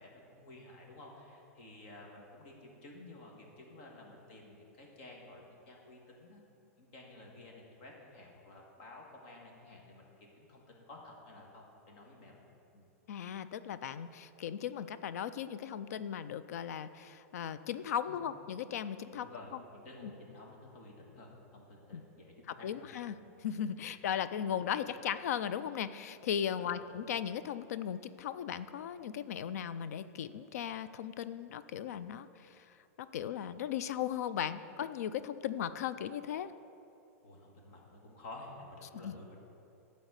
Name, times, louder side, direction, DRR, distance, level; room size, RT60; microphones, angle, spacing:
voice 1, 0.0-6.4 6.8-12.5 12.7-12.8 18.1-18.2 19.1-22.7 23.1-23.2 23.8-23.9 26.6-26.8 37.2-39.4, left 2 dB, 45° left, -1 dB, 1.7 m, -52 dB
voice 2, 13.1-19.6 20.0-20.1 21.9-22.0 22.5-32.7 33.0-36.5 39.0-39.1, left 9 dB, 85° left, 14 dB, 0.4 m, -37 dB
12.0 x 4.1 x 8.0 m, 2.8 s
supercardioid pair, 175°, 8 cm